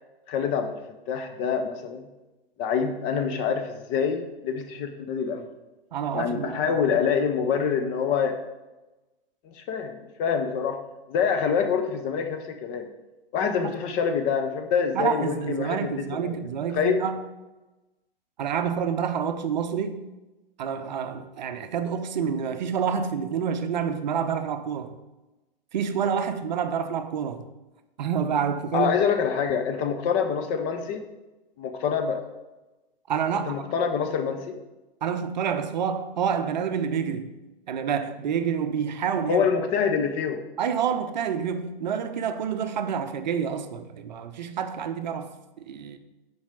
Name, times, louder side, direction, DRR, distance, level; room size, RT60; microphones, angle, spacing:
voice 1, 0.3-0.8 1.1-2.1 2.6-5.5 6.1-8.4 9.4-10.8 11.1-12.9 13.3-16.4 16.7-17.0 28.7-31.0 31.6-32.2 33.5-34.6 39.3-40.4, left 6 dB, 20° left, 0.5 m, -26 dB
voice 2, 5.9-6.6 13.6-13.7 14.9-17.2 18.4-20.0 20.6-25.0 25.7-27.4 28.0-29.0 33.1-33.6 35.0-37.3 37.7-39.5 40.6-46.0, right 7 dB, 50° right, 0.7 m, -28 dB
7.1 x 4.7 x 4.8 m
figure-of-eight pair, 110°, 29 cm